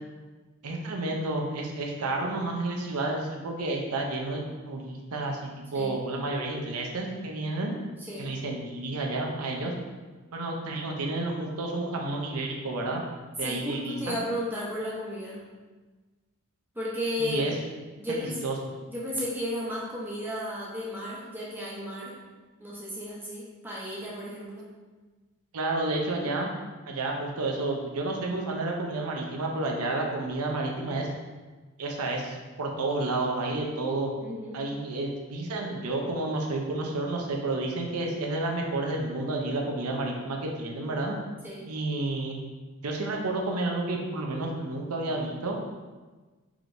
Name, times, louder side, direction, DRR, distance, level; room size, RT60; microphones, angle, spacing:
voice 1, 0.6-7.8 8.2-9.7 10.3-13.0 13.4-14.1 17.2-17.5 18.1-18.6 25.5-26.5 26.9-31.1 31.8-34.1 34.5-41.1 41.7-42.4 42.8-45.6, right 2 dB, 85° right, 0 dB, 0.7 m, -30 dB
voice 2, 13.4-15.4 16.7-17.4 18.0-18.5 18.9-22.1 22.6-24.7 34.2-34.6 41.4-41.7, equal, 10° right, -6 dB, 0.7 m, -34 dB
4.8 x 2.9 x 2.6 m, 1.3 s
head